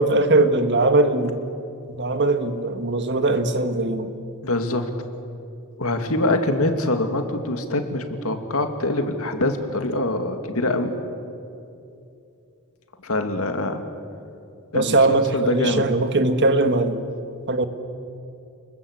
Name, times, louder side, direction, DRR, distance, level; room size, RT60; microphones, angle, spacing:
voice 1, 0.0-1.4 2.0-4.1 14.7-17.0 17.5-17.7, right 2 dB, 55° right, 9 dB, 1.6 m, -20 dB
voice 2, 4.4-4.9 5.8-10.9 13.0-13.8 14.7-15.9, left 2 dB, 65° left, 6 dB, 2.4 m, -24 dB
30.0 x 21.5 x 8.2 m, 2.6 s
head